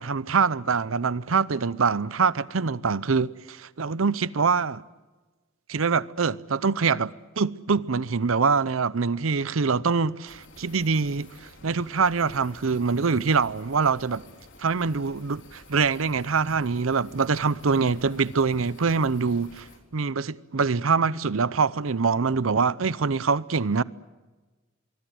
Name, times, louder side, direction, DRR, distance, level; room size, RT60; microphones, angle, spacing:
voice 1, 0.0-4.8 5.7-14.2 14.6-19.7 19.9-23.8, right 5 dB, 85° right, 0.7 m, -24 dB
sound 1, 10.3-19.8, left 2 dB, 65° left, 4.1 m, -51 dB
25.0 x 23.5 x 7.8 m
head